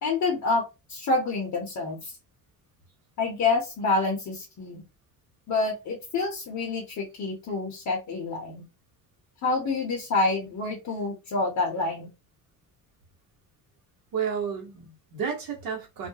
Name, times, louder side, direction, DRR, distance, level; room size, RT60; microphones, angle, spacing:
voice 1, 0.0-2.1 3.2-4.8 5.5-8.6 9.4-12.1, left 3 dB, 45° left, 0.8 m, -27 dB
voice 2, 14.1-16.1, right 7 dB, 55° right, 1.0 m, -31 dB
2.3 x 2.1 x 2.7 m
cardioid pair, 130°, 40 cm